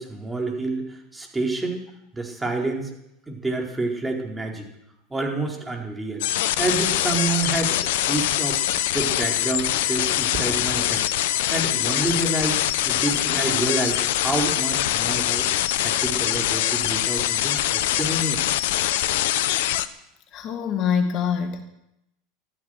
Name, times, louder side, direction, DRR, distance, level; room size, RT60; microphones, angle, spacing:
voice 1, 0.0-1.8 2.1-2.9 3.3-4.7 5.1-6.3 6.6-8.6 8.9-11.0 11.5-12.6 12.9-15.5 15.8-18.4, right 2 dB, 15° right, 0 dB, 4.5 m, -28 dB
sound 1, 6.2-19.9, left 13 dB, 70° left, 0.8 m, -23 dB
sound 2, 10.3-10.9 12.8-13.1, right 6 dB, 50° right, 5.7 m, -38 dB
voice 2, 20.3-21.6, left 7 dB, 50° left, 6 dB, 1.9 m, -24 dB
15.0 x 13.5 x 6.6 m, 0.81 s
hypercardioid pair, 90°, 0 cm